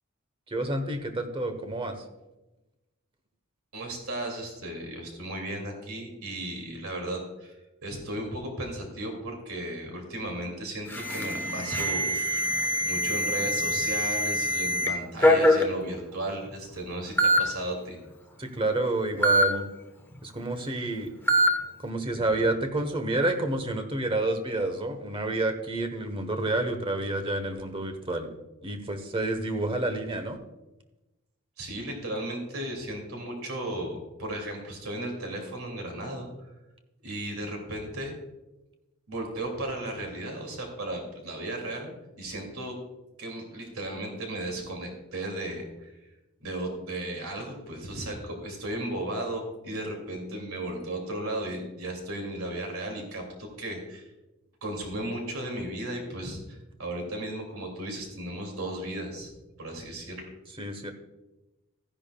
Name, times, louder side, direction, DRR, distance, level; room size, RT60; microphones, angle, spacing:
voice 1, 0.5-2.0 18.4-19.7 20.2-21.1 21.8-28.3 28.6-30.4 60.6-60.9, right 2 dB, 25° right, 7 dB, 1.1 m, -29 dB
voice 2, 3.7-7.5 7.8-12.1 12.8-18.0 22.2-22.3 31.6-36.3 37.0-38.1 39.1-41.9 42.2-42.8 43.2-45.9 46.4-53.2 53.6-54.1 54.6-59.3 59.6-60.3, right 1 dB, 80° right, 2 dB, 2.5 m, -35 dB
Alarm, 10.9-14.9 15.2-15.6 16.5-16.6 17.2-17.4 19.2-19.4 21.3-21.5, equal, 10° left, 1.0 m, -23 dB
15.0 x 10.5 x 2.3 m, 1.0 s
head